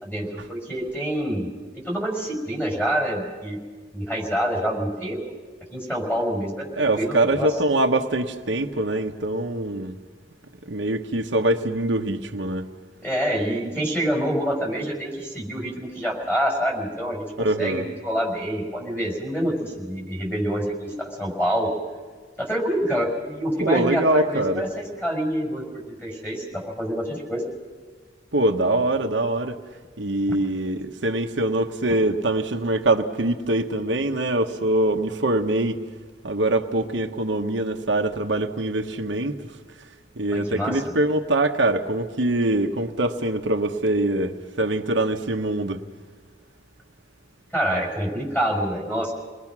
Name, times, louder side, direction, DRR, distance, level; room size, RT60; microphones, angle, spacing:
voice 1, 0.0-1.5 1.7-3.6 3.9-5.2 5.7-7.5 13.0-21.7 22.4-27.4 40.3-40.8 47.5-49.1, equal, 10° left, 5.7 m, -26 dB
voice 2, 6.8-10.0 10.7-12.7 17.4-17.9 23.6-24.6 28.3-29.6 30.0-35.8 36.2-39.4 40.2-45.8, right 1 dB, 75° right, 1.1 m, -23 dB
30.0 x 21.0 x 6.1 m
head